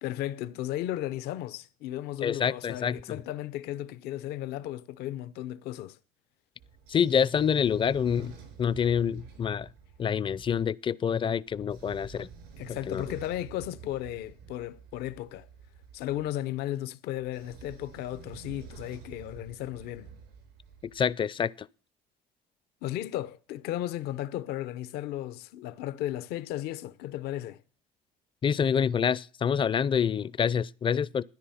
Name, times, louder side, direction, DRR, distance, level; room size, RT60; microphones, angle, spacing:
voice 1, 0.0-6.0 12.6-15.5 15.9-20.1 22.8-27.6, left 13 dB, 75° left, 0.7 m, -35 dB
voice 2, 2.2-3.2 6.9-9.7 10.0-12.3 12.7-13.0 20.9-21.7 28.4-31.2, left 7 dB, 30° left, 0.5 m, -27 dB
Train / Sliding door, 6.6-10.6 11.5-16.3 17.1-21.0, right 7 dB, 80° right, 5.0 m, -49 dB
13.0 x 10.0 x 5.7 m
cardioid pair, 100°, 17 cm